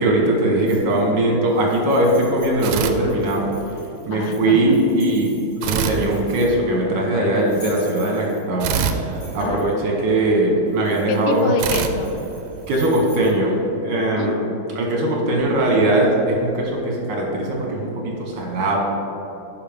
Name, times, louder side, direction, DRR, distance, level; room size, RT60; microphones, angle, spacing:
voice 1, 0.0-3.5 4.0-5.3 5.6-8.7 9.3-11.5 12.7-13.6 13.8-14.3 14.8-18.8, right 1 dB, 60° right, -1 dB, 1.9 m, -20 dB
sound 1, 0.7-1.2 1.5-6.7 7.3-8.6 9.0-9.7 10.7-13.3, left 1 dB, 45° left, 2.5 m, -45 dB
voice 2, 0.9-1.2 4.1-4.8 9.4-10.1 11.1-12.1 14.1-15.0 15.4-15.7, left 4 dB, 85° left, 6 dB, 1.5 m, -27 dB
sound 2, 2.6-3.8 5.6-7.0 8.6-10.3 11.6-13.1, right 6 dB, 80° right, 1.4 m, -27 dB
10.5 x 5.4 x 3.6 m, 3.0 s
omnidirectional pair, 2.3 m